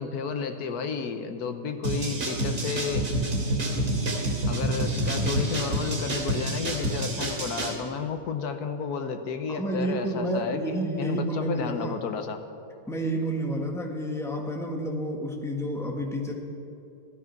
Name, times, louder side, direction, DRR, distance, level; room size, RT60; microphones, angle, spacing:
voice 1, 0.0-3.1 4.5-12.4, left 5 dB, 75° left, 8 dB, 1.4 m, -32 dB
sound 1, 1.8-7.8, right 1 dB, 65° right, 2.7 m, -28 dB
voice 2, 9.5-12.0 12.9-16.3, right 1 dB, ahead, 1 dB, 1.4 m, -30 dB
16.0 x 13.0 x 5.9 m, 2.8 s
omnidirectional pair, 1.7 m